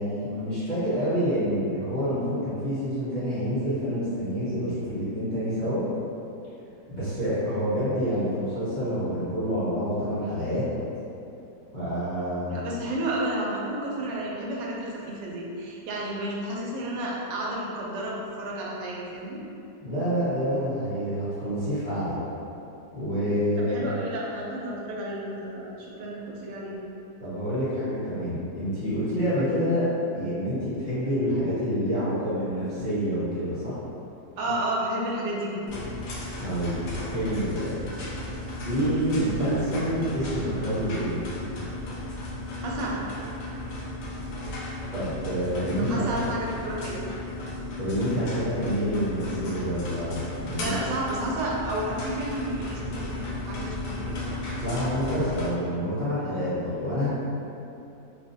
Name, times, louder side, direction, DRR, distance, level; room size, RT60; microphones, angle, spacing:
voice 1, 0.0-5.8 6.9-10.6 11.7-12.6 19.8-22.2 22.9-23.8 27.2-29.8 30.1-33.7 36.4-36.8 37.1-37.8 38.6-41.2 44.9-46.1 47.8-50.8 54.6-57.1, equal, 30° left, -15 dB, 1.3 m, -27 dB
voice 2, 12.5-19.4 23.6-26.7 29.3-29.5 34.4-35.9 42.6-43.2 45.8-47.0 50.6-54.2, right 1 dB, 85° right, -3 dB, 1.2 m, -32 dB
sound 1, 35.7-55.5, left 1 dB, 80° left, 1.2 m, -35 dB
3.8 x 2.4 x 2.5 m, 2.7 s
omnidirectional pair, 1.9 m